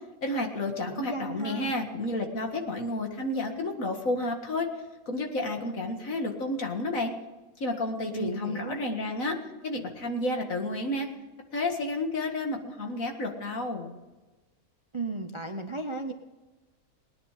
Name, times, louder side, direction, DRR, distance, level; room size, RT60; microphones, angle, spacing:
voice 1, 0.2-4.7 5.1-7.1 7.6-9.4 9.6-11.1 11.5-13.9, left 2 dB, 65° left, 3 dB, 2.2 m, -31 dB
voice 2, 0.8-1.7 8.1-8.8 14.9-16.1, right 3 dB, 25° right, 6 dB, 0.7 m, -35 dB
19.0 x 10.0 x 5.0 m, 1.2 s
omnidirectional pair, 1.5 m